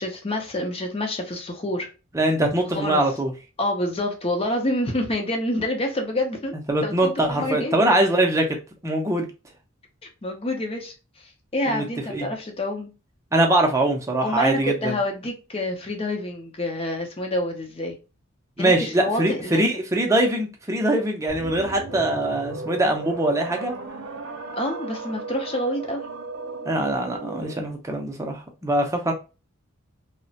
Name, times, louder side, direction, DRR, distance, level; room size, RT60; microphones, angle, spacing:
voice 1, 0.0-1.9 2.7-3.0 3.6-6.5 6.8-7.8 10.2-12.9 14.2-18.0 18.6-19.7 24.5-26.1, left 1 dB, 30° left, 0.6 m, -27 dB
voice 2, 2.1-3.3 6.7-8.6 8.8-9.3 11.7-11.8 12.1-12.3 13.3-14.9 18.6-23.7 26.7-29.1, right 1 dB, 15° right, 0.5 m, -22 dB
sound 1, 21.3-27.8, right 3 dB, 70° right, 0.7 m, -35 dB
2.9 x 2.1 x 2.7 m
head